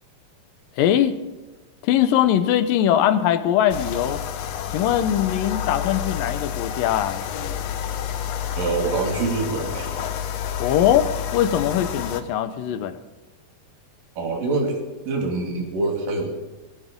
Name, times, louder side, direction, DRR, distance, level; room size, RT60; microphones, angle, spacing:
voice 1, 0.8-1.2 1.8-4.2 4.7-7.2 10.6-13.0, left 10 dB, 90° left, 11 dB, 2.6 m, -21 dB
sound 1, 3.7-12.2, left 9 dB, 70° left, 1.6 m, -29 dB
voice 2, 8.6-10.0 14.2-16.3, right 3 dB, 80° right, 2 dB, 3.9 m, -25 dB
20.0 x 17.5 x 3.7 m, 1.2 s
omnidirectional pair, 3.9 m